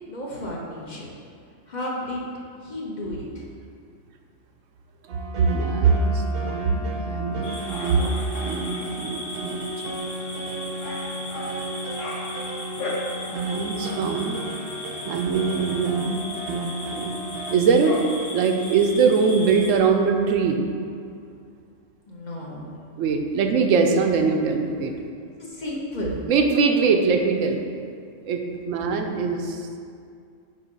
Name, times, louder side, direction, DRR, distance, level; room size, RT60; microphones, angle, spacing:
voice 1, 0.1-1.1 1.7-2.3 2.6-3.4 22.1-22.8 25.4-26.2 29.0-29.2, left 1 dB, 40° left, -4 dB, 0.9 m, -33 dB
sound 1, 5.1-17.6, right 1 dB, 60° right, 0.8 m, -34 dB
voice 2, 5.4-9.7 13.3-14.4 15.1-16.2 16.5-17.2 17.5-18.0 18.3-20.6 23.0-24.9 26.3-27.6 28.2-29.8, right 5 dB, 85° right, 4 dB, 1.0 m, -22 dB
sound 2, 7.4-19.8, left 1 dB, 85° left, 1.4 m, -36 dB
7.4 x 2.7 x 5.2 m, 2.3 s
omnidirectional pair, 1.3 m